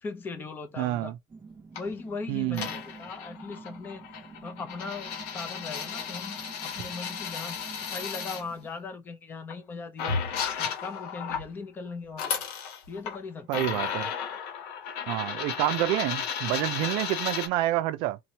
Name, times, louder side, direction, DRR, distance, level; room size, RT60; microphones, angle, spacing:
voice 1, 0.0-1.1 1.8-4.0 4.4-10.2 10.6-12.3 12.9-13.8, left 4 dB, 20° left, 0.7 m, -39 dB
voice 2, 0.8-1.2 2.3-2.7 13.5-14.1 15.1-18.2, right 15 dB, 65° right, 0.4 m, -28 dB
sound 1, 1.3-8.7, right 4 dB, 20° right, 0.8 m, -49 dB
sound 2, 1.8-1.9 2.5-8.4 9.5-9.6 10.0-11.5 12.1-13.2 13.5-17.5, left 7 dB, 75° left, 1.4 m, -34 dB
4.1 x 3.0 x 2.8 m
cardioid pair, 175°, 9 cm